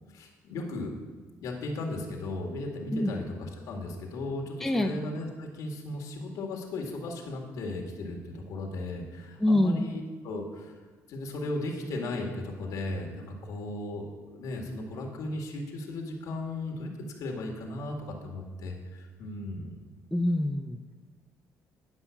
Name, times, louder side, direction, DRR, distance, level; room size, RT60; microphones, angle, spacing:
voice 1, 0.1-0.9 1.4-10.8 11.1-16.9 17.2-19.8, left 2 dB, 70° left, 1 dB, 1.8 m, -36 dB
voice 2, 4.6-4.9 9.4-9.8 20.1-20.8, left 1 dB, 5° left, 5 dB, 0.5 m, -25 dB
10.0 x 5.6 x 7.0 m, 1.4 s
cardioid pair, 125°, 6 cm